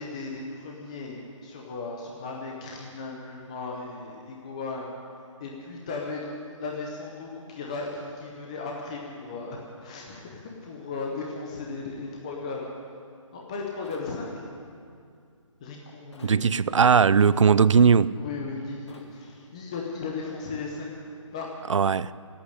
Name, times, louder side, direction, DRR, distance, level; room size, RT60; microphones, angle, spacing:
voice 1, 0.0-12.7 13.3-14.4 15.6-16.7 18.1-20.9 21.3-21.5, left 3 dB, 10° left, 0.7 m, -36 dB
sound 1, 13.8-14.1 16.1-16.4 18.9-19.1, left 3 dB, 60° left, 1.8 m, -52 dB
voice 2, 16.2-18.2 21.7-22.1, right 6 dB, 65° right, 0.4 m, -19 dB
16.5 x 8.7 x 10.0 m
hypercardioid pair, 170°, 17 cm